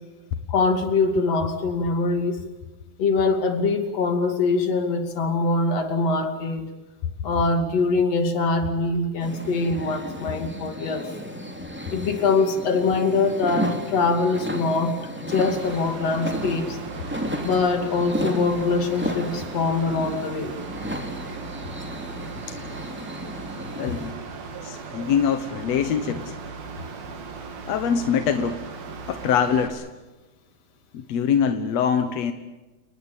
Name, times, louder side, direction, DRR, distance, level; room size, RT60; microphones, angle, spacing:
voice 1, 0.5-2.4 3.0-6.6 7.2-11.1 11.9-16.8 17.4-20.5, left 3 dB, 45° left, 6 dB, 3.5 m, -23 dB
sound 1, 9.2-24.1, equal, 5° right, 2.0 m, -33 dB
Mechanical fan, 15.5-29.7, right 4 dB, 75° right, 4.5 m, -37 dB
voice 2, 23.8-24.2 24.6-26.3 27.7-28.6 29.1-29.9 30.9-32.3, left 7 dB, 60° left, 8 dB, 1.8 m, -23 dB
29.5 x 20.0 x 7.4 m, 1.1 s
omnidirectional pair, 4.3 m